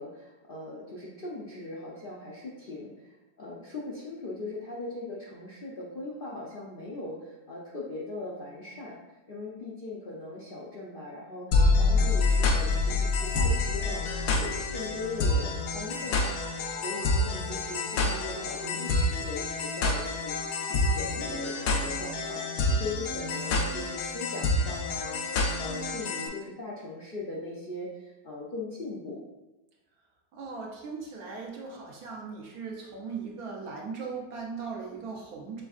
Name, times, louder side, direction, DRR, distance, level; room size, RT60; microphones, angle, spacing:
voice 1, 0.0-29.2, left 2 dB, 55° left, -6 dB, 0.6 m, -40 dB
sound 1, 11.5-26.3, left 2 dB, 75° left, 1.2 m, -27 dB
voice 2, 30.3-35.6, right 5 dB, 65° right, -1 dB, 1.2 m, -38 dB
6.1 x 3.4 x 2.4 m, 1.1 s
omnidirectional pair, 1.7 m